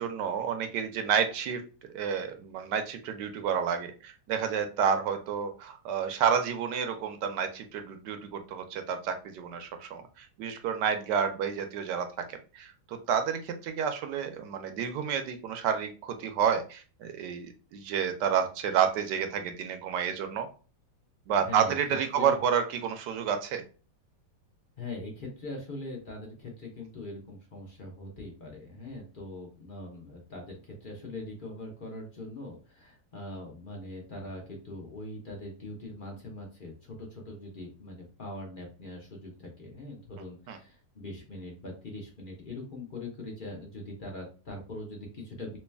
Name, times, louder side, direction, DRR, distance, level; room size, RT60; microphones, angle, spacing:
voice 1, 0.0-1.6 1.9-20.5 21.3-23.6 40.5-40.6, right 7 dB, 75° right, 7 dB, 1.1 m, -30 dB
voice 2, 21.3-21.8 22.1-22.4 24.8-45.6, left 2 dB, 40° left, 0 dB, 0.7 m, -42 dB
3.1 x 3.0 x 3.3 m, 0.36 s
omnidirectional pair, 2.0 m